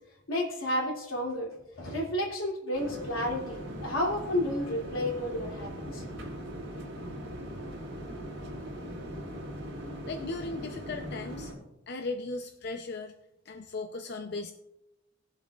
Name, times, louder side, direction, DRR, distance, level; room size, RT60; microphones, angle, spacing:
voice 1, 0.3-6.0, left 1 dB, 90° left, -2 dB, 2.8 m, -31 dB
sound 1, 2.7-11.5, equal, 75° right, 3.3 m, -40 dB
voice 2, 10.0-11.5 11.9-13.1 13.5-14.5, left 3 dB, 55° left, 6 dB, 0.6 m, -37 dB
19.5 x 7.3 x 2.4 m, 0.92 s
head